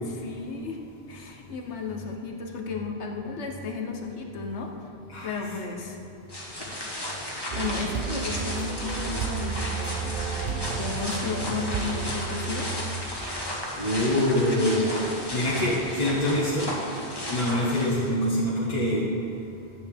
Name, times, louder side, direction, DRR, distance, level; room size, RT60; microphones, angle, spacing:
voice 1, 0.1-0.8 1.1-4.7 5.2-6.0 7.5-12.7, left 5 dB, 90° left, 2 dB, 1.3 m, -34 dB
sound 1, 6.3-18.2, left 1 dB, 20° left, 1.4 m, -34 dB
sound 2, 7.5-13.6, right 7 dB, 60° right, 0.6 m, -33 dB
voice 2, 13.8-15.0 15.3-16.7 17.3-19.1, left 1 dB, 40° left, -8 dB, 1.5 m, -25 dB
13.0 x 8.6 x 3.6 m, 2.9 s
omnidirectional pair, 1.1 m